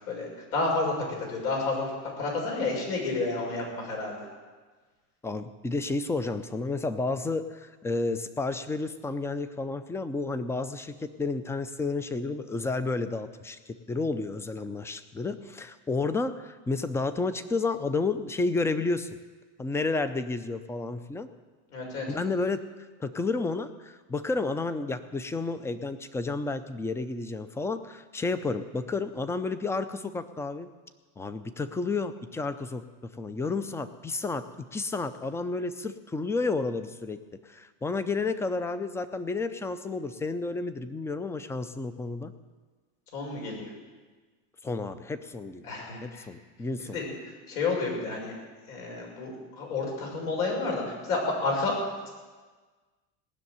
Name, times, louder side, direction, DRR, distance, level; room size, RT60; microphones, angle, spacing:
voice 1, 0.1-4.2 21.7-22.1 43.1-43.7 45.7-46.2 46.9-47.1 47.5-48.3 48.7-52.1, left 3 dB, 75° left, -1 dB, 6.6 m, -30 dB
voice 2, 5.2-19.1 19.6-21.3 22.1-22.7 23.0-30.7 31.2-42.3 44.6-47.0, left 3 dB, 5° left, 12 dB, 0.4 m, -31 dB
18.5 x 6.6 x 9.5 m, 1.4 s
supercardioid pair, 130°, 45 cm